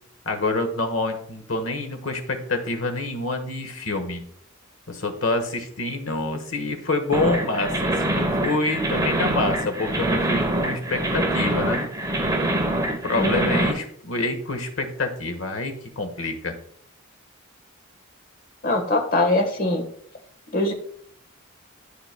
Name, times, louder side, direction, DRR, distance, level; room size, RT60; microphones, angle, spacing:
voice 1, 0.2-4.2 4.9-11.8 13.0-16.5, left 2 dB, 70° left, 6 dB, 1.2 m, -27 dB
sound 1, 7.1-13.7, right 1 dB, 20° right, 0.9 m, -24 dB
voice 2, 13.2-13.7 18.6-19.8 20.5-20.7, left 2 dB, 45° left, 3 dB, 1.3 m, -22 dB
12.0 x 5.0 x 2.2 m, 0.63 s
head